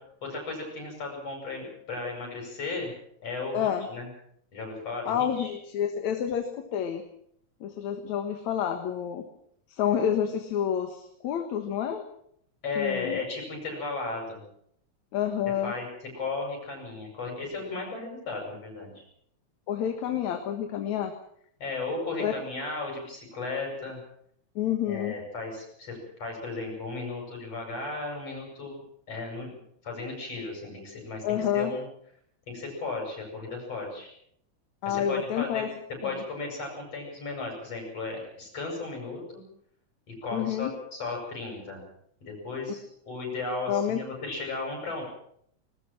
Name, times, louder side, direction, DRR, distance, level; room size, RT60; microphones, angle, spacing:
voice 1, 0.2-2.9 3.2-4.1 4.5-5.5 12.6-14.4 15.6-15.9 16.1-19.0 21.6-24.0 24.9-29.5 29.8-31.9 32.5-34.1 34.9-35.6 36.0-39.4 40.2-41.8 42.2-45.0, left 3 dB, 55° left, 1 dB, 9.2 m, -35 dB
voice 2, 3.5-3.9 5.1-7.0 7.6-9.2 9.7-12.0 12.8-13.2 15.1-15.7 19.7-21.1 22.2-22.3 24.6-25.2 31.2-31.7 34.8-35.7 36.0-36.2 40.3-40.7 43.7-44.0, left 9 dB, 75° left, 6 dB, 2.8 m, -28 dB
20.5 x 19.5 x 7.5 m, 0.69 s
omnidirectional pair, 3.3 m